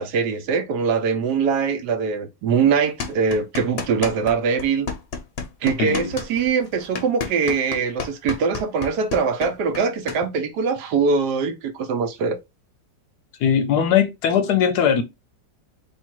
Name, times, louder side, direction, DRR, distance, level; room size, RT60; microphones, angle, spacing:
voice 1, 0.0-4.9 5.6-12.4, right 5 dB, 70° right, 1.1 m, -22 dB
sound 1, 3.0-4.3 4.6-10.2, left 5 dB, 45° left, 0.8 m, -31 dB
voice 2, 5.8-6.1 13.4-15.0, left 8 dB, 70° left, 1.1 m, -19 dB
3.5 x 2.7 x 4.4 m
omnidirectional pair, 2.0 m